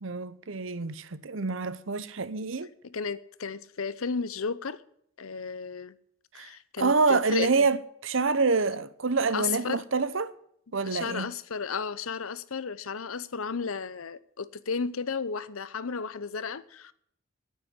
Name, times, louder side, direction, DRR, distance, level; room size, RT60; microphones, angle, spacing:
voice 1, 0.0-2.7 6.3-6.5 6.8-10.3 10.7-11.3, right 4 dB, 65° right, 0.8 m, -27 dB
voice 2, 2.8-4.8 5.2-6.0 6.3-7.7 9.3-9.8 10.8-16.9, left 5 dB, 80° left, 0.7 m, -33 dB
9.4 x 9.2 x 9.8 m
head